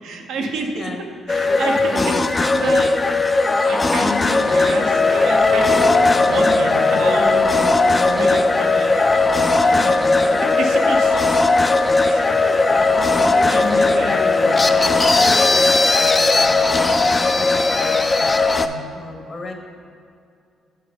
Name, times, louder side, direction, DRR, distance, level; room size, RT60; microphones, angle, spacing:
voice 1, 0.0-0.9 1.3-5.8 6.1-11.4 12.0-12.8 13.3-14.6 18.6-18.9, right 3 dB, 85° right, 2 dB, 0.8 m, -30 dB
voice 2, 0.8-1.2 1.5-2.7 9.7-10.0 12.7-18.2 18.8-19.6, left 3 dB, 40° left, 4 dB, 0.9 m, -33 dB
sound 1, 1.3-18.7, left 3 dB, 25° left, 0.3 m, -17 dB
sound 2, 4.0-15.6, left 4 dB, 75° left, 0.6 m, -31 dB
6.7 x 4.7 x 5.1 m, 2.4 s
cardioid pair, 90°, 0 cm